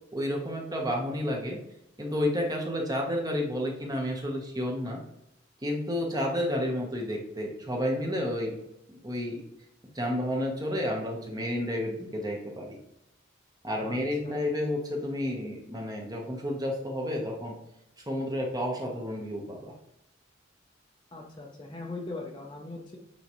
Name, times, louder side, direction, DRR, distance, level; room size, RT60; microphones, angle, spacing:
voice 1, 0.1-1.6 2.0-5.0 5.6-8.6 9.0-9.4 9.9-12.8 13.6-17.6 18.1-19.7, left 1 dB, 20° right, 0 dB, 1.2 m, -31 dB
voice 2, 21.1-23.0, left 2 dB, 25° left, -2 dB, 0.8 m, -40 dB
8.9 x 4.0 x 3.2 m, 0.84 s
head